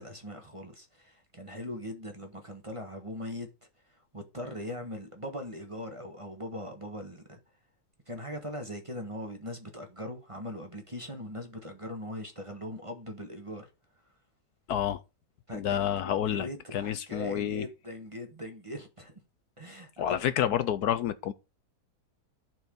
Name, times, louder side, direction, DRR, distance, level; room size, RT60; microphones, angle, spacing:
voice 1, 0.0-7.4 8.1-13.7 15.5-15.9 16.3-19.1 19.6-20.2, left 1 dB, 20° right, 1.2 m, -40 dB
voice 2, 14.7-15.0 15.5-17.7 20.0-21.3, left 10 dB, 70° left, 1.1 m, -29 dB
11.5 x 4.6 x 5.2 m
omnidirectional pair, 1.9 m